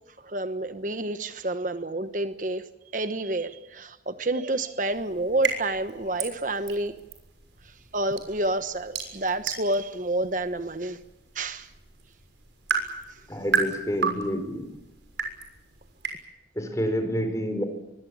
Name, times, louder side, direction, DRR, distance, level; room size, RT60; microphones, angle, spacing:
voice 1, 0.2-2.6 2.9-7.0 7.6-11.0 11.3-11.7 13.1-13.2, right 2 dB, 45° right, 10 dB, 1.2 m, -29 dB
sound 1, 4.9-16.2, right 5 dB, 80° right, 6.4 m, -34 dB
voice 2, 13.3-14.7 16.6-17.6, equal, 15° left, 8 dB, 4.5 m, -28 dB
24.5 x 22.0 x 8.7 m, 0.95 s
head